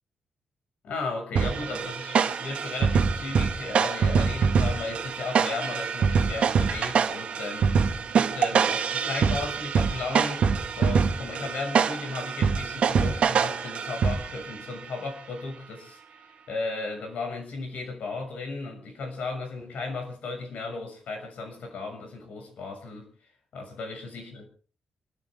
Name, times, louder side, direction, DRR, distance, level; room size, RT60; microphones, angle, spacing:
voice 1, 0.8-10.5 10.7-23.1 23.5-24.5, left 3 dB, 75° left, 4 dB, 6.6 m, -35 dB
sound 1, 1.4-14.5, right 6 dB, 60° right, 1.7 m, -25 dB
28.5 x 13.5 x 3.7 m, 0.40 s
wide cardioid pair, 170°, 2 cm